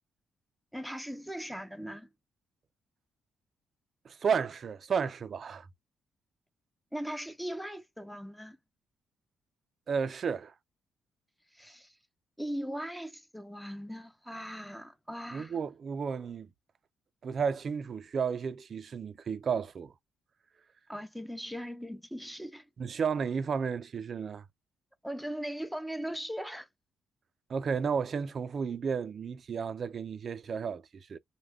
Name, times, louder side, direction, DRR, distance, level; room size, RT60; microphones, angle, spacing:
voice 1, 0.7-2.1 6.9-8.6 11.5-11.9 12.4-15.6 20.9-22.7 25.0-26.7, equal, ahead, 0.5 m, -39 dB
voice 2, 4.0-5.7 9.9-10.5 15.3-16.5 17.2-19.9 22.8-24.4 27.5-31.2, right 6 dB, 50° right, 0.4 m, -32 dB
2.2 x 2.1 x 3.4 m
cardioid pair, 90°, 0 cm